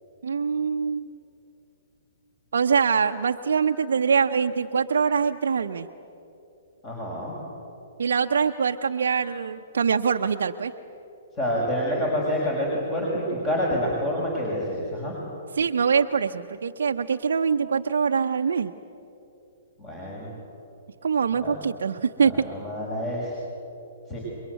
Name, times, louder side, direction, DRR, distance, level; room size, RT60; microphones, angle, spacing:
voice 1, 0.2-1.1 2.5-5.9 8.0-10.7 15.5-18.7 21.0-22.5, right 6 dB, 65° right, 4 dB, 0.7 m, -24 dB
voice 2, 6.8-7.4 11.4-15.1 19.8-20.3 21.4-21.6 22.5-23.3 24.1-24.2, equal, 25° left, -3 dB, 6.1 m, -27 dB
29.5 x 22.5 x 8.2 m, 2.9 s
figure-of-eight pair, 115°, 0 cm